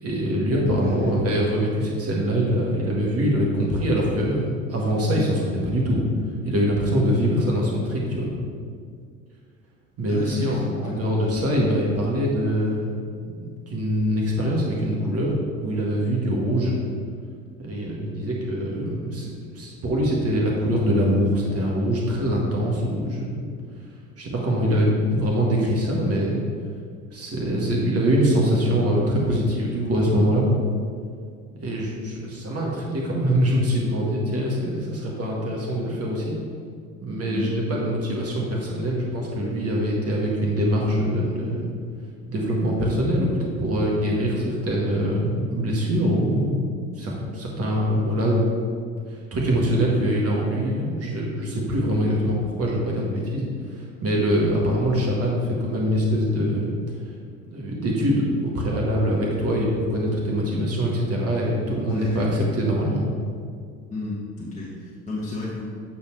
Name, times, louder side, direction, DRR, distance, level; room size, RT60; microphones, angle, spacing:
voice 1, 0.0-6.0 6.4-8.3 10.0-12.9 13.2-15.3 15.6-16.7 17.6-23.5 24.2-26.4 27.1-30.5 31.6-36.4 37.0-41.7 42.3-44.3 44.7-46.7 47.0-48.4 49.1-53.5 53.7-56.7 57.5-63.1, equal, 35° right, -3 dB, 1.7 m, -23 dB
voice 2, 0.6-1.2 10.1-11.0 37.3-37.7 44.3-44.5 61.9-62.4 63.9-65.6, left 3 dB, 20° left, -6 dB, 1.3 m, -32 dB
7.9 x 4.4 x 4.6 m, 2.1 s
figure-of-eight pair, 60°, 40 cm